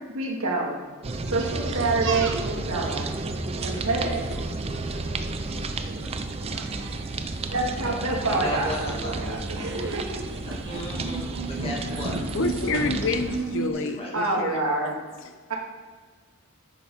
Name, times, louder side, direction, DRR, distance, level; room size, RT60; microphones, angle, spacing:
voice 1, 0.1-0.8 1.3-3.1 3.6-4.3 7.5-10.2 14.1-15.0 15.5-15.6, right 2 dB, 80° right, 0 dB, 1.9 m, -27 dB
sound 1, 1.0-13.4, right 3 dB, 30° right, 0.5 m, -32 dB
sound 2, 1.1-13.7, right 3 dB, 60° right, 0.9 m, -36 dB
voice 2, 8.0-9.2 10.4-12.2 13.7-14.6, left 1 dB, 25° left, -3 dB, 1.9 m, -36 dB
voice 3, 12.3-14.8, left 3 dB, 65° left, 7 dB, 0.7 m, -28 dB
9.2 x 6.9 x 5.2 m, 1.5 s
head